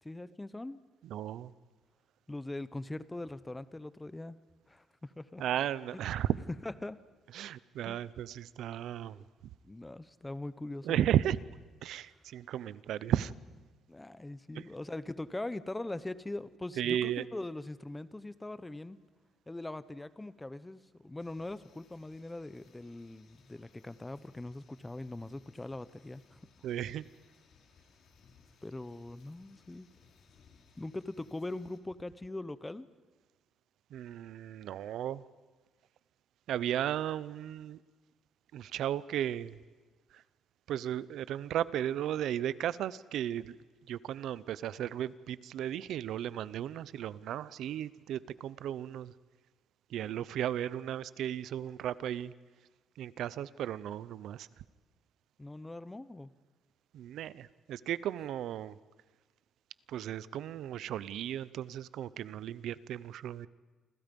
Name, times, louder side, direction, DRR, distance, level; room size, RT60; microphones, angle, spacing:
voice 1, 0.0-0.8 2.3-4.4 4.7-5.4 5.9-6.0 6.6-7.0 7.9-8.0 9.2-9.3 9.6-11.0 13.9-19.0 19.5-26.7 28.6-29.9 30.8-32.9 55.4-56.3, left 2 dB, 10° left, 15 dB, 0.7 m, -41 dB
voice 2, 1.0-1.5 5.4-6.4 7.3-9.2 10.8-11.4 11.8-13.3 14.5-14.6 16.8-17.2 26.6-27.0 33.9-35.2 36.5-37.8 38.5-39.6 40.1-40.2 40.7-43.5 43.9-49.1 49.9-52.3 53.0-54.5 56.9-58.8 59.9-63.5, right 11 dB, 65° right, 18 dB, 0.7 m, -35 dB
sound 1, 21.2-31.8, left 5 dB, 50° left, 2.8 m, -65 dB
28.5 x 26.5 x 5.3 m, 1.3 s
cardioid pair, 180°, 0 cm